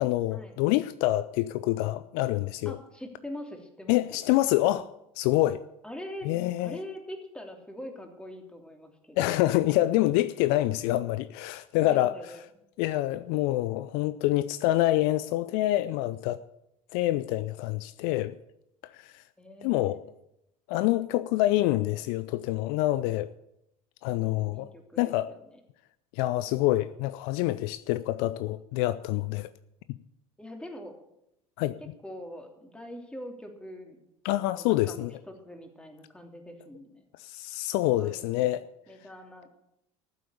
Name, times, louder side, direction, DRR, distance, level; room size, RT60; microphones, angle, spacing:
voice 1, 0.0-2.8 3.9-4.9 5.2-5.6 6.2-6.8 9.2-12.1 12.8-16.4 16.9-18.4 18.9-19.2 19.6-20.0 20.7-23.3 24.0-24.7 25.0-25.3 26.1-29.5 31.6-31.8 34.2-35.1 37.2-38.6, left 16 dB, 60° left, 0.5 m, -26 dB
voice 2, 2.6-4.2 5.8-6.3 6.6-9.4 11.8-12.6 19.4-20.1 24.1-25.6 30.4-30.9 31.8-34.0 34.5-37.1 38.0-38.5 38.9-39.5, left 1 dB, 5° left, 3.0 m, -43 dB
14.0 x 8.0 x 8.4 m
hypercardioid pair, 70°, 18 cm